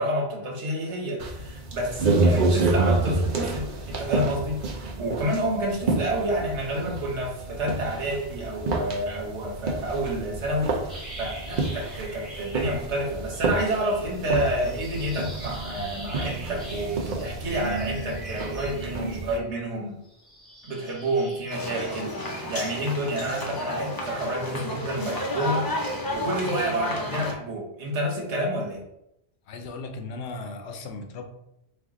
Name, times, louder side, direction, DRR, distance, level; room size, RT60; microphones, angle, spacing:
voice 1, 0.0-20.0 20.6-28.8, right 1 dB, 85° right, 0 dB, 1.3 m, -29 dB
sound 1, 1.2-19.4, right 3 dB, 55° right, 0.7 m, -29 dB
sound 2, 10.9-13.1 13.3-19.6 20.0-24.5 24.9-26.2, right 1 dB, ahead, 1.2 m, -44 dB
sound 3, 21.5-27.3, left 1 dB, 35° left, 0.4 m, -31 dB
voice 2, 29.5-31.2, left 3 dB, 75° left, 5 dB, 0.9 m, -36 dB
4.4 x 2.5 x 3.6 m, 0.82 s
omnidirectional pair, 1.2 m